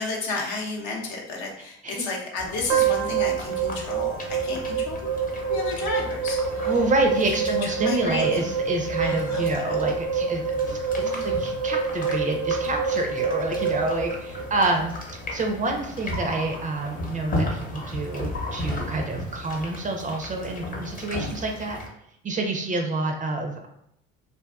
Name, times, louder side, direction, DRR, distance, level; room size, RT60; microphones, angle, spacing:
voice 1, 0.0-5.2 5.5-6.7 7.6-8.5 9.0-9.7 10.7-11.5, left 3 dB, 70° left, -1 dB, 0.8 m, -32 dB
sound 1, 2.4-21.9, left 1 dB, 25° left, 0.7 m, -35 dB
sound 2, 2.7-14.9, right 5 dB, 90° right, 0.5 m, -27 dB
voice 2, 6.7-14.9 15.3-21.8 22.2-23.7, right 2 dB, 25° right, 3 dB, 0.4 m, -28 dB
2.4 x 2.3 x 2.3 m, 0.72 s
supercardioid pair, 75°, 30 cm